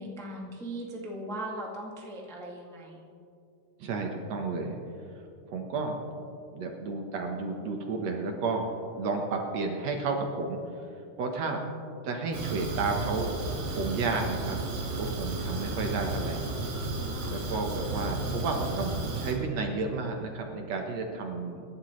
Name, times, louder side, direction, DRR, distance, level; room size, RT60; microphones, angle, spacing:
voice 1, 0.0-3.0 17.1-17.3 21.5-21.6, right 1 dB, 5° left, -2 dB, 0.4 m, -39 dB
voice 2, 3.8-4.8 5.5-6.0 6.5-10.6 11.2-11.6 12.0-13.3 13.7-14.6 15.0-16.4 17.3-21.6, right 3 dB, 60° right, 2 dB, 2.0 m, -32 dB
Fire, 12.3-19.3, right 2 dB, 80° right, 4.6 m, -33 dB
25.5 x 12.0 x 3.2 m, 2.5 s
omnidirectional pair, 4.0 m